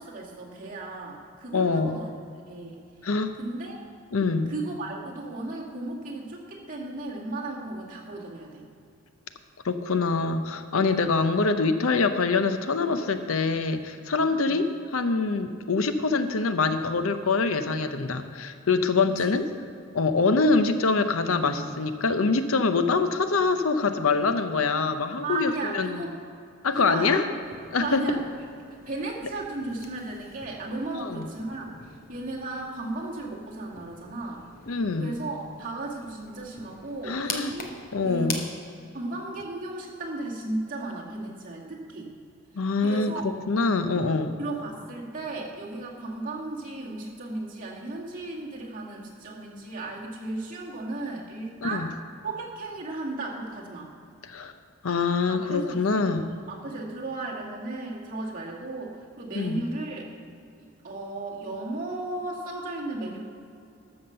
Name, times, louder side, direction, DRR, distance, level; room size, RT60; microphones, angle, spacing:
voice 1, 0.0-2.2 2.5-3.1 3.4-3.8 4.5-8.6 14.3-14.6 25.2-26.1 26.7-27.3 27.8-28.2 28.9-37.7 38.0-38.5 38.9-42.1 42.5-43.3 44.4-51.9 52.2-53.9 55.3-56.2 56.5-60.1 60.8-63.2, right 2 dB, 40° right, -4 dB, 2.0 m, -35 dB
voice 2, 1.5-2.0 3.0-3.4 4.1-4.5 9.6-19.5 19.9-26.0 26.6-27.2 27.7-28.0 31.0-31.2 34.7-35.1 37.1-37.5 37.9-38.4 42.6-43.1 43.5-44.4 51.6-51.9 54.2-54.5 54.8-56.3 59.3-59.6, left 4 dB, 70° left, 9 dB, 0.7 m, -25 dB
sound 1, 27.4-38.4, left 4 dB, 45° left, 1.2 m, -43 dB
13.0 x 5.8 x 6.9 m, 2.5 s
head